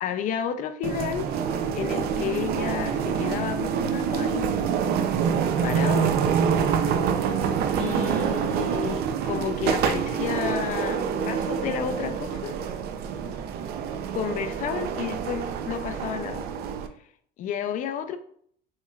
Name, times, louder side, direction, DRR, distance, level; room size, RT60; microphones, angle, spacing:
voice 1, 0.0-1.3 1.7-5.0 5.6-6.2 7.8-12.6 14.1-16.5 17.4-18.2, left 8 dB, 40° left, 10 dB, 0.4 m, -31 dB
sound 1, 0.8-16.9, right 7 dB, 50° right, 0.4 m, -26 dB
5.5 x 3.1 x 2.3 m, 0.62 s
cardioid pair, 175°, 21 cm